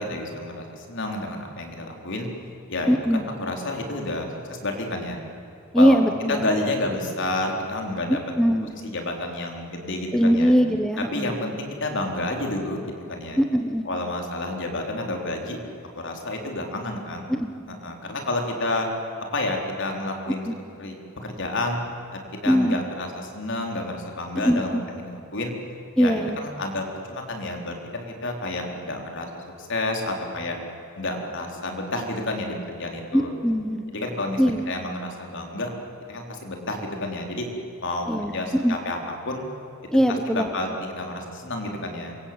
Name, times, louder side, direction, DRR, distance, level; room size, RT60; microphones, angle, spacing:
voice 1, 0.0-2.3 2.7-5.2 5.8-6.0 6.3-8.2 8.8-10.5 11.0-13.4 13.8-15.6 16.0-17.3 17.7-18.9 19.3-20.5 20.8-21.8 22.1-25.5 26.0-30.6 31.0-33.3 33.9-34.4 34.7-35.7 36.1-37.5 37.8-39.4 40.1-42.1, left 2 dB, 60° left, 2 dB, 4.3 m, -30 dB
voice 2, 2.9-3.3 5.7-6.5 8.1-8.7 10.1-11.3 13.4-13.8 17.3-17.5 20.4-20.5 22.5-22.8 24.5-24.8 26.0-26.4 33.1-33.8 34.4-34.6 38.1-38.8 39.9-40.5, equal, 5° left, 6 dB, 1.0 m, -21 dB
27.5 x 23.5 x 8.9 m, 2.7 s
head